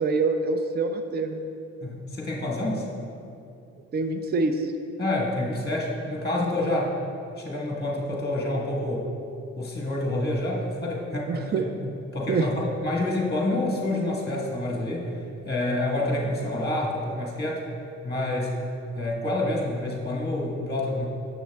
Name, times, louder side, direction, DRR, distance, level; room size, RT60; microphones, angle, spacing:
voice 1, 0.0-1.5 3.9-4.7 11.3-11.6 12.3-12.5, right 3 dB, 35° right, 6 dB, 0.6 m, -25 dB
voice 2, 1.8-2.9 5.0-7.0 7.4-9.1 9.6-11.7 12.1-15.1 15.4-17.6 18.0-18.5 18.9-21.1, left 1 dB, 15° left, -2 dB, 1.3 m, -28 dB
10.0 x 6.7 x 3.5 m, 2.5 s
cardioid pair, 90°, 30 cm